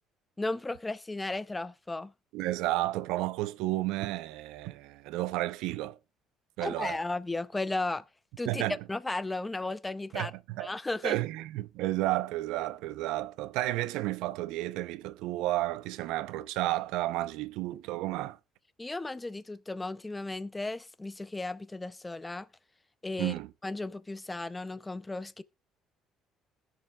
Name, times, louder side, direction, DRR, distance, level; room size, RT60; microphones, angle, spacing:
voice 1, 0.4-2.1 6.6-8.0 8.4-8.6 8.9-10.3 10.6-11.2 18.8-22.5 23.0-23.3 23.6-25.4, left 2 dB, 10° left, 0.5 m, -35 dB
voice 2, 2.3-6.0 6.6-7.0 8.4-8.8 10.1-10.7 11.0-18.4 23.2-23.5, right 16 dB, 85° right, 0.6 m, -32 dB
20.0 x 6.7 x 2.3 m
cardioid pair, 160°, 0 cm